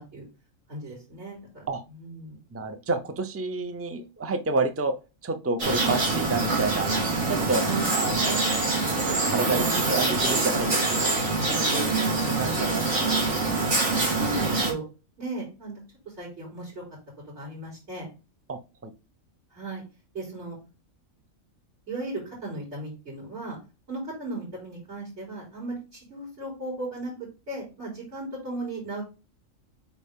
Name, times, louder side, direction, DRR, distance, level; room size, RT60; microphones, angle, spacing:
voice 1, 0.7-1.7 1.9-2.4 7.6-7.9 11.7-12.1 14.2-14.8 15.2-15.8 16.0-16.8 17.3-18.1 19.5-19.8 20.1-20.6 21.9-23.6 23.9-27.1 27.5-29.0, right 2 dB, 55° right, -6 dB, 4.4 m, -36 dB
voice 2, 2.5-4.9 5.2-6.9 7.3-7.6 7.9-8.4 9.1-11.1 11.5-13.5 18.5-18.9, right 3 dB, 15° right, 8 dB, 0.5 m, -30 dB
sound 1, 5.6-14.7, right 3 dB, 75° right, 2.7 m, -25 dB
8.2 x 3.5 x 3.7 m, 0.30 s
omnidirectional pair, 1.4 m